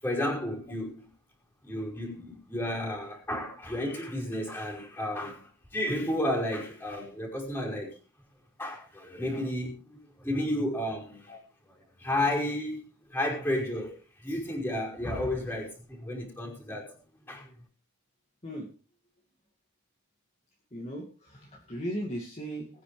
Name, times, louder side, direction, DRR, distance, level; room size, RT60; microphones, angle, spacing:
voice 1, 0.0-1.1 1.6-7.9 8.6-11.4 11.7-12.8 13.1-13.9 14.2-16.9 17.3-17.5, left 1 dB, 10° left, 5.3 m, -32 dB
voice 2, 20.7-22.7, right 1 dB, 30° left, 2.4 m, -37 dB
21.5 x 9.7 x 3.4 m
head